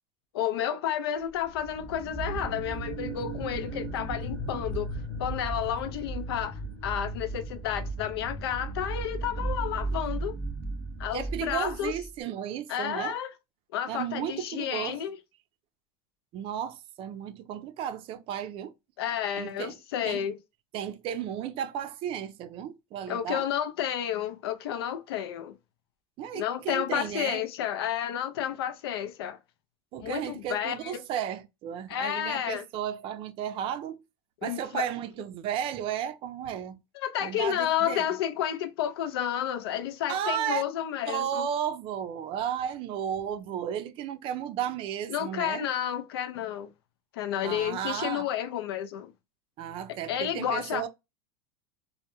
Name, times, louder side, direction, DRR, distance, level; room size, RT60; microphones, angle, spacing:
voice 1, 0.3-10.4 11.0-11.9 12.7-13.3 13.7-15.2 19.0-20.4 23.1-25.6 26.3-29.4 30.0-31.0 31.9-32.6 34.4-34.9 36.9-41.5 45.1-46.7 47.1-49.1 50.1-50.8, left 10 dB, 80° left, 0.4 m, -31 dB
sound 1, 1.5-12.1, right 2 dB, 5° left, 0.9 m, -35 dB
voice 2, 11.1-13.2 13.9-15.0 16.3-18.7 19.4-19.8 20.0-20.2 20.7-23.4 26.2-27.4 29.9-34.0 34.4-36.8 37.2-38.1 40.1-40.6 41.1-45.7 47.4-48.3 49.6-50.9, right 9 dB, 45° right, 0.4 m, -34 dB
2.2 x 2.1 x 2.8 m
supercardioid pair, 110°, 13 cm